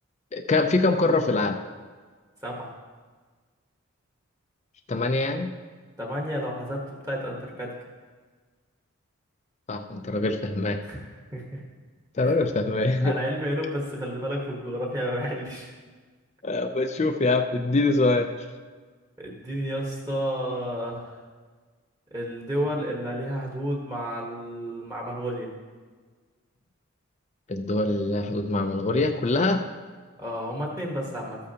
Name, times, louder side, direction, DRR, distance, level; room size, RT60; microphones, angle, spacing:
voice 1, 0.3-1.6 4.9-5.5 9.7-10.8 12.2-13.1 16.4-18.3 27.5-29.6, left 2 dB, 30° left, 6 dB, 0.4 m, -24 dB
voice 2, 6.0-7.8 10.8-11.6 12.2-12.3 13.0-15.7 19.2-21.2 22.1-25.5 30.2-31.4, equal, 15° right, -2 dB, 1.2 m, -31 dB
13.5 x 8.4 x 2.9 m, 1.5 s
head